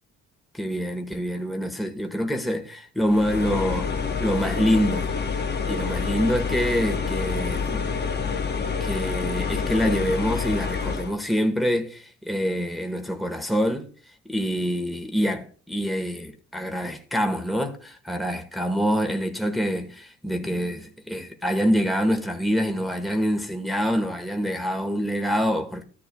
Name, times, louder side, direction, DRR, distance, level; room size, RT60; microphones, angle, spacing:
voice 1, 0.5-5.1 5.7-7.9 8.8-13.9 14.3-25.8, equal, ahead, 1.3 m, -26 dB
sound 1, 3.1-11.1, left 5 dB, 35° left, 0.9 m, -27 dB
13.5 x 10.0 x 2.3 m
cardioid pair, 90°, 30 cm